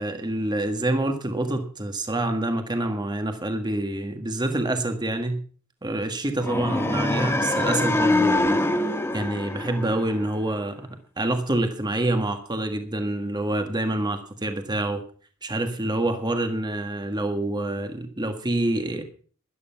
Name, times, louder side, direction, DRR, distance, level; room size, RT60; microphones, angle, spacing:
voice 1, 0.0-5.4 5.8-8.6 9.1-10.9 11.2-15.0 15.4-19.0, right 1 dB, 20° right, 6 dB, 1.6 m, -27 dB
sound 1, 6.4-10.5, left 2 dB, 10° left, 1.3 m, -24 dB
13.0 x 11.0 x 5.7 m, 0.42 s
head